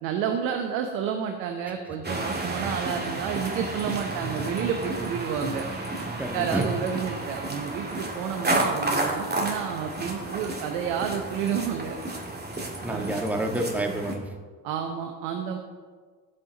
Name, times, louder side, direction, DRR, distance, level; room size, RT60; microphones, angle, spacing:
voice 1, 0.0-5.7 6.3-12.0 12.9-13.1 14.6-15.6, right 7 dB, 80° right, 4 dB, 1.0 m, -30 dB
sound 1, 2.0-14.1, right 2 dB, 20° right, 2.3 m, -31 dB
voice 2, 6.2-6.7 12.5-12.6 12.8-14.3, right 1 dB, 5° right, 2 dB, 1.5 m, -29 dB
16.0 x 5.6 x 4.0 m, 1.5 s
hypercardioid pair, 70°, 50 cm